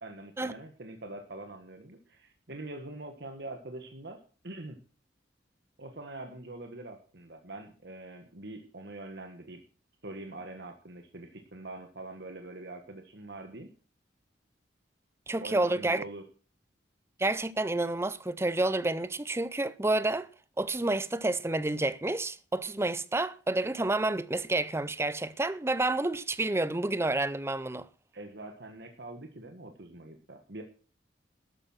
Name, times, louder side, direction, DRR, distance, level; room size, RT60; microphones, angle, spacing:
voice 1, 0.0-4.8 5.8-9.6 10.0-13.7 15.4-16.2 28.1-30.6, right 2 dB, 60° right, 1.5 m, -44 dB
voice 2, 15.3-16.0 17.2-20.3 20.6-27.9, right 2 dB, 15° right, 0.5 m, -29 dB
13.0 x 8.8 x 6.2 m
head